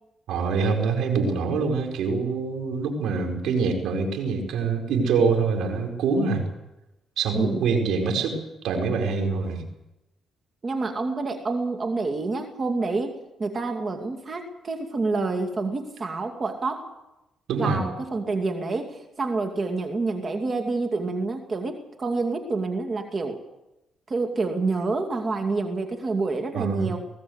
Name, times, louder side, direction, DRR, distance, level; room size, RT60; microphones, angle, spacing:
voice 1, 0.3-6.5 7.2-8.4 8.6-9.7 17.5-17.8 26.5-26.9, right 4 dB, 80° right, 3 dB, 4.9 m, -25 dB
voice 2, 7.3-7.6 10.6-13.1 13.4-16.9 17.6-23.4 24.1-27.0, right 3 dB, 40° right, 4 dB, 2.5 m, -28 dB
20.5 x 17.0 x 8.0 m, 0.95 s
cardioid pair, 90°, 0 cm